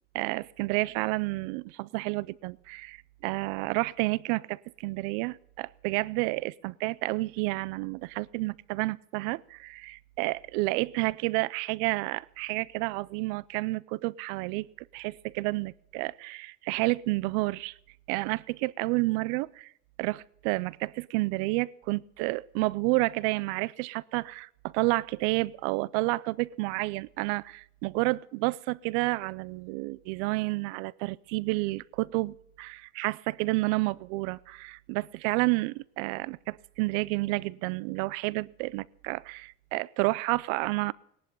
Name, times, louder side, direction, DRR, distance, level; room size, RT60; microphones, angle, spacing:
voice 1, 0.1-14.7 14.9-17.7 18.1-19.7 20.0-40.9, right 22 dB, 90° right, 22 dB, 0.6 m, -30 dB
18.5 x 11.0 x 5.5 m, 0.72 s
cardioid pair, 145°, 33 cm